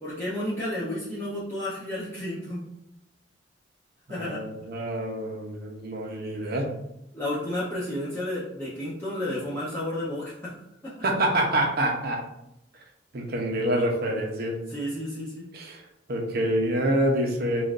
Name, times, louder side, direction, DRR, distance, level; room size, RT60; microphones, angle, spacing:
voice 1, 0.0-2.7 4.1-4.4 7.1-10.5 10.8-10.9 14.7-15.5, left 1 dB, 15° left, -10 dB, 0.7 m, -32 dB
voice 2, 4.1-6.7 11.0-12.2 13.1-14.6 15.5-15.8 16.1-17.6, right 1 dB, 55° right, 1 dB, 0.8 m, -26 dB
5.1 x 2.5 x 2.5 m, 0.82 s
head